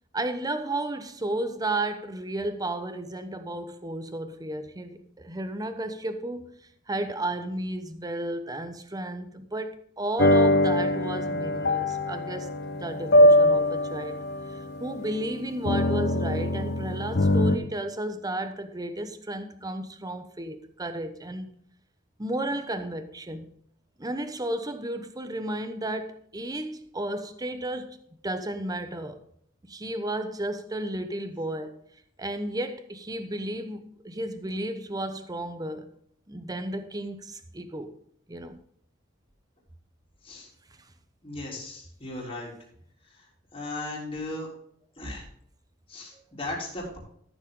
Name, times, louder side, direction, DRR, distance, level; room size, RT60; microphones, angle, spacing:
voice 1, 0.1-6.6 6.9-14.2 14.5-21.5 22.2-23.5 24.0-28.0 28.2-29.2 29.7-31.8 32.2-35.9 36.3-37.9 38.3-38.6 46.1-46.2, right 1 dB, 20° right, 0.9 m, -33 dB
sound 1, 10.2-17.6, left 1 dB, 60° left, 0.9 m, -23 dB
voice 2, 41.2-42.5 43.5-44.5 45.0-45.2 45.9-47.0, left 2 dB, 30° left, 3.8 m, -36 dB
14.0 x 7.3 x 3.7 m
head